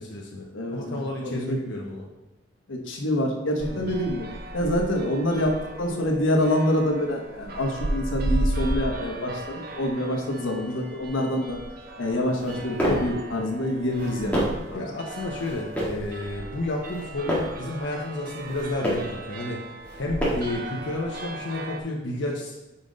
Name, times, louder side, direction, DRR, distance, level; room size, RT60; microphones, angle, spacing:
voice 1, 0.0-2.1 3.7-3.9 14.7-19.6 20.0-22.5, left 2 dB, 65° left, -2 dB, 0.7 m, -31 dB
voice 2, 0.5-1.6 2.7-4.3 4.5-11.6 12.0-14.8, left 1 dB, 80° left, 2 dB, 1.0 m, -26 dB
sound 1, 3.6-21.8, right 1 dB, 50° right, 0.6 m, -35 dB
sound 2, 12.3-13.2 13.8-14.7 15.4-16.1 16.8-17.6 18.3-19.2 19.8-20.6, equal, 5° left, 1.5 m, -29 dB
5.6 x 5.2 x 3.8 m, 1.0 s
head